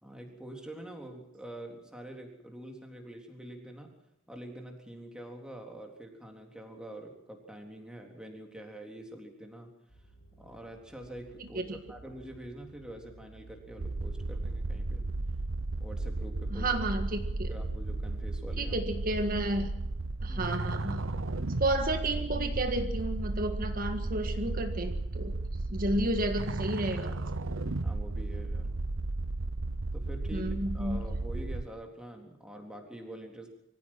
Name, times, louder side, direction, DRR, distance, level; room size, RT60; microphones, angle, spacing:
voice 1, 0.0-3.9 4.3-9.7 10.4-15.0 15.8-16.7 17.5-18.8 20.3-20.5 25.8-26.0 27.8-28.8 29.9-33.5, right 1 dB, 5° right, 2 dB, 3.7 m, -46 dB
sound 1, 9.9-28.8, right 2 dB, 50° left, 5.4 m, -56 dB
voice 2, 11.4-11.8 16.5-17.5 18.6-19.7 20.2-21.1 21.6-25.3 25.7-27.2 30.3-31.0, right 1 dB, 45° right, 6 dB, 1.7 m, -32 dB
sound 2, 13.8-31.6, right 2 dB, 75° right, 0.9 m, -34 dB
24.5 x 15.5 x 7.5 m, 0.83 s
head